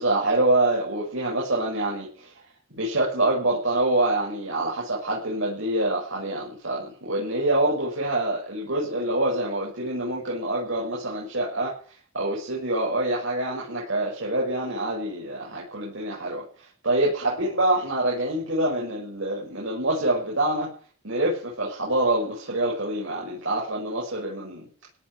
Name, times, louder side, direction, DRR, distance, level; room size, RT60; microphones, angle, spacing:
voice 1, 0.0-2.3 2.7-11.8 12.1-16.4 16.8-20.7 21.0-24.6, right 1 dB, 70° right, -4 dB, 6.6 m, -26 dB
17.5 x 7.5 x 9.6 m, 0.42 s
head